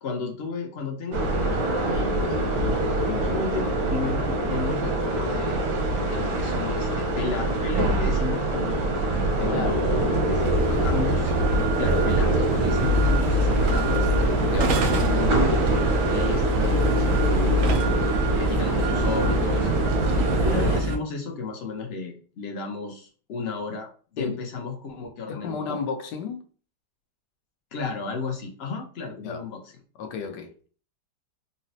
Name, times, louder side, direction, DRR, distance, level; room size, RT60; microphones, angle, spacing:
voice 1, 0.0-5.7 6.0-8.9 9.4-14.1 14.9-15.4 15.6-18.0 18.4-19.7 20.0-25.8 27.7-29.6, left 4 dB, 60° left, 0.6 m, -33 dB
sound 1, 1.1-20.8, right 2 dB, 85° right, 1.3 m, -24 dB
voice 2, 3.0-3.4 9.4-9.8 14.5-14.8 24.2-24.4 25.3-26.4 29.2-29.4 30.0-30.5, left 5 dB, 90° left, 1.3 m, -32 dB
sound 2, 10.4-21.0, equal, 70° right, 0.8 m, -26 dB
4.0 x 2.0 x 2.6 m
omnidirectional pair, 1.8 m